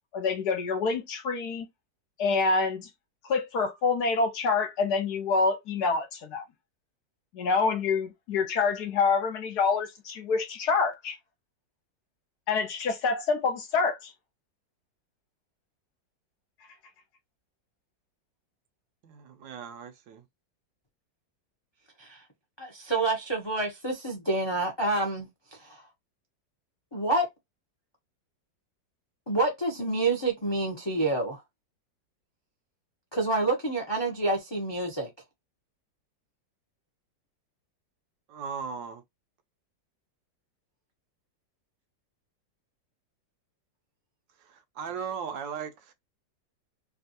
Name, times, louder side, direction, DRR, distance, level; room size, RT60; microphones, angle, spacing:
voice 1, 0.1-1.7 2.2-2.9 3.2-6.4 7.3-11.2 12.5-14.1, left 4 dB, 70° left, 1.2 m, -27 dB
voice 2, 19.0-20.2 38.3-39.0 44.4-45.9, right 7 dB, 80° right, 1.4 m, -38 dB
voice 3, 22.6-25.8 26.9-27.3 29.3-31.4 33.1-35.1, right 2 dB, 35° left, 0.4 m, -28 dB
3.4 x 2.3 x 2.6 m
omnidirectional pair, 2.0 m